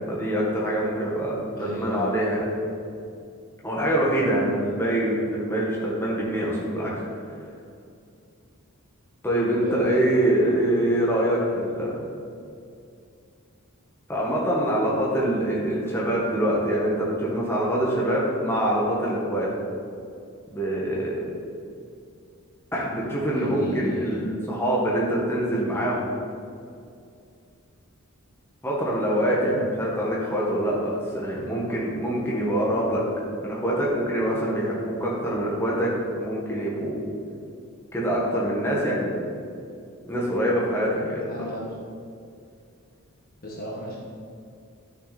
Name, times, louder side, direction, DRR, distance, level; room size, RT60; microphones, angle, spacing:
voice 1, 0.1-2.5 3.6-6.9 9.2-12.0 14.1-19.5 20.5-21.2 22.7-26.1 28.6-33.0 33.4-37.0 37.9-39.1 40.1-41.3, right 1 dB, 10° left, -5 dB, 1.7 m, -25 dB
voice 2, 1.5-2.1 4.3-4.6 9.5-9.8 23.3-24.2 29.3-29.6 41.0-41.6 43.4-44.0, equal, 40° left, -3 dB, 1.5 m, -35 dB
11.5 x 6.8 x 4.3 m, 2.4 s
head